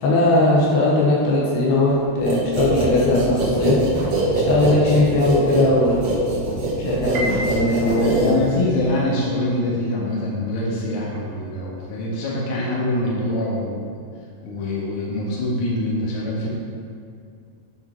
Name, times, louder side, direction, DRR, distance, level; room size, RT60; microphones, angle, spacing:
voice 1, 0.0-3.8 4.5-6.0 6.8-8.4, left 2 dB, 80° left, -5 dB, 3.3 m, -19 dB
sound 1, 2.3-8.8, right 2 dB, 60° right, 1.7 m, -23 dB
Piano, 7.1-8.4, equal, 80° right, 1.6 m, -30 dB
voice 2, 8.0-13.9 14.4-16.5, left 1 dB, 60° left, -5 dB, 2.5 m, -24 dB
9.1 x 4.5 x 4.5 m, 2.3 s
omnidirectional pair, 4.6 m